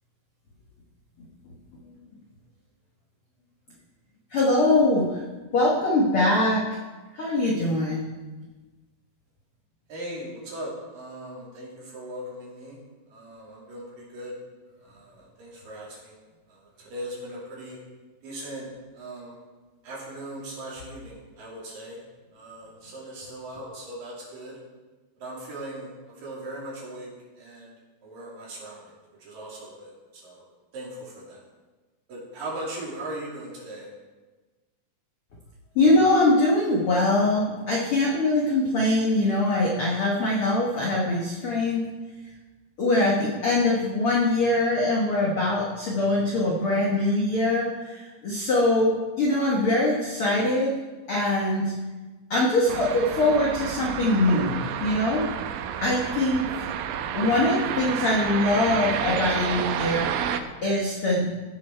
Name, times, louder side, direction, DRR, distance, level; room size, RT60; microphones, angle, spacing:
voice 1, 4.3-5.2 5.5-6.6 7.1-8.0 35.7-41.8 42.8-50.7 51.1-51.7 52.3-55.2 55.8-56.7 57.1-60.1 60.6-61.3, left 2 dB, 75° left, -3 dB, 1.2 m, -23 dB
voice 2, 9.9-12.8 13.1-14.4 14.8-16.2 16.5-17.8 18.2-18.7 18.9-19.4 19.8-22.0 22.3-24.6 25.2-27.1 27.4-27.7 28.0-28.8 29.2-30.5 30.7-31.4 32.1-33.9, right 1 dB, 60° right, -5 dB, 4.3 m, -39 dB
sound 1, 52.7-60.4, right 9 dB, 90° right, 2.0 m, -30 dB
16.5 x 6.6 x 4.5 m, 1.3 s
omnidirectional pair, 4.6 m